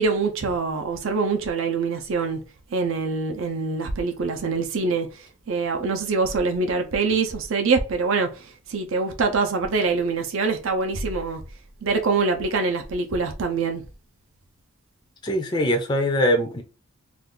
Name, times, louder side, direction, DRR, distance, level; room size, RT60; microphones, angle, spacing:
voice 1, 0.0-2.4 2.7-5.1 5.5-8.3 8.7-11.4 11.8-13.8, right 4 dB, 60° right, 0.5 m, -24 dB
voice 2, 15.2-16.6, equal, 20° left, 0.4 m, -22 dB
2.5 x 2.4 x 3.6 m
head